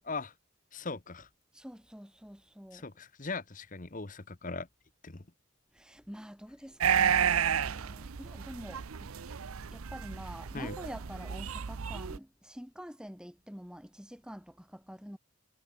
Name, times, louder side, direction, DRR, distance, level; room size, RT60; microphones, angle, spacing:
voice 1, 0.7-1.3 2.7-4.7 5.0-5.2 10.5-10.8, left 3 dB, 40° left, 1.1 m, -39 dB
voice 2, 1.5-2.8 5.7-15.2, equal, 5° right, 3.2 m, -47 dB
sound 1, 6.8-12.2, right 8 dB, 85° right, 0.7 m, -31 dB
head